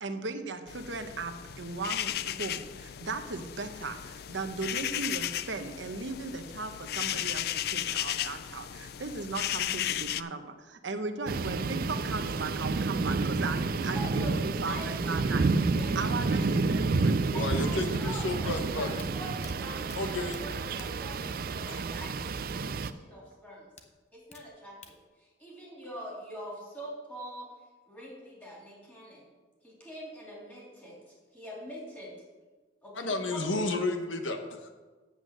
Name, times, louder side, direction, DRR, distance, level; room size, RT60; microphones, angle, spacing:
voice 1, 0.0-15.4 15.9-17.2 17.7-17.9, right 3 dB, 75° right, 7 dB, 0.9 m, -37 dB
sound 1, 0.7-10.2, left 11 dB, 55° left, 0.3 m, -35 dB
sound 2, 11.3-22.9, right 3 dB, 50° right, 0.4 m, -30 dB
voice 2, 13.9-16.2 17.3-22.1 22.4-23.7 24.1-27.5 27.9-29.3 29.6-32.1 32.8-33.9, equal, 10° left, -5 dB, 3.3 m, -44 dB
voice 3, 17.3-18.9 19.9-20.4 21.7-21.8 33.0-34.7, left 2 dB, 85° left, 5 dB, 1.1 m, -32 dB
sound 3, 18.5-22.0 22.3-22.4 23.8-25.0, left 4 dB, 35° left, 0.8 m, -51 dB
8.1 x 8.0 x 6.6 m, 1.3 s
head